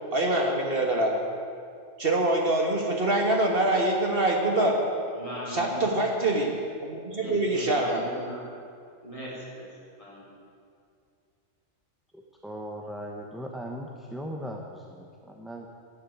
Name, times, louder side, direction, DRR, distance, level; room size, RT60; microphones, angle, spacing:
voice 1, 0.1-1.2 2.0-4.9 5.5-8.0, right 1 dB, 45° right, 0 dB, 1.7 m, -25 dB
voice 2, 5.1-6.0 7.2-8.4 9.0-9.7 10.0-10.2, equal, 25° left, -6 dB, 4.5 m, -39 dB
voice 3, 12.1-15.7, equal, ahead, 0 dB, 0.9 m, -38 dB
12.0 x 11.5 x 9.3 m, 2.3 s
omnidirectional pair, 1.3 m